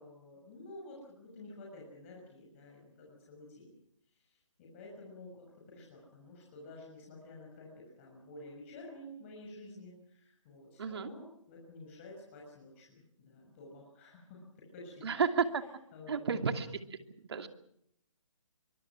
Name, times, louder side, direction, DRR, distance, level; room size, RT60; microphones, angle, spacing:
voice 1, 0.0-3.7 4.1-15.0 15.9-16.3, left 2 dB, 25° left, -2 dB, 6.4 m, -51 dB
voice 2, 10.8-11.1 15.0-15.6 16.1-16.8 17.3-17.5, right 6 dB, 55° right, 7 dB, 2.6 m, -31 dB
24.5 x 24.0 x 6.1 m, 0.70 s
hypercardioid pair, 165°, 17 cm